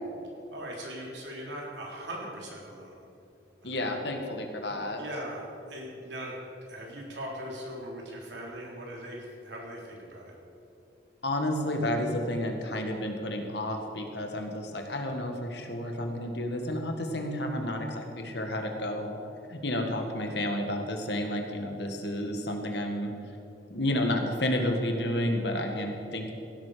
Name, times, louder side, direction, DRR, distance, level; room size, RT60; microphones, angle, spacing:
voice 1, 0.5-3.0 3.6-3.9 5.0-5.4 5.7-6.4 6.7-10.3, right 1 dB, 75° right, -2 dB, 3.7 m, -40 dB
voice 2, 3.6-5.0 11.2-19.2 19.5-23.1 23.7-26.3, left 1 dB, 70° left, 4 dB, 1.8 m, -31 dB
16.5 x 12.5 x 5.1 m, 2.8 s
head